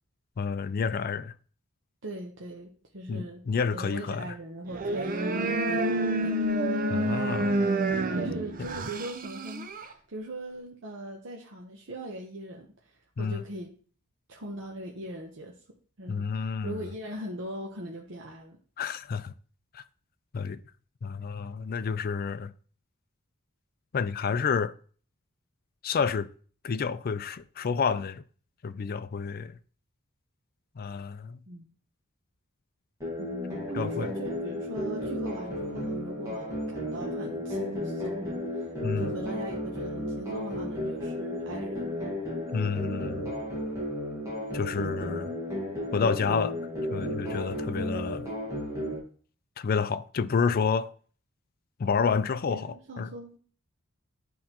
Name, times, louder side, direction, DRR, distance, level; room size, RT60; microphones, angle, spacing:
voice 1, 0.4-1.3 3.1-4.3 6.9-7.7 8.6-8.7 13.2-13.4 16.1-16.8 18.8-19.3 19.7-19.8 20.3-20.6 21.0-22.5 23.9-24.7 25.8-26.3 26.6-28.2 28.6-29.6 30.8-31.4 33.7-34.1 38.8-39.1 42.5-43.3 44.5-45.4 45.9-46.6 46.9-48.3 49.6-50.9 51.8-53.1, left 5 dB, 45° left, 0.4 m, -29 dB
voice 2, 2.0-3.4 3.7-6.5 8.1-13.7 14.3-15.5 16.0-18.6 31.5-31.7 33.2-38.7 38.9-41.9 52.5-53.4, right 1 dB, 60° right, 0.9 m, -40 dB
sound 1, 4.7-9.9, right 1 dB, 45° right, 0.6 m, -28 dB
sound 2, 33.0-49.0, left 1 dB, 15° right, 1.8 m, -33 dB
11.0 x 3.7 x 2.9 m
head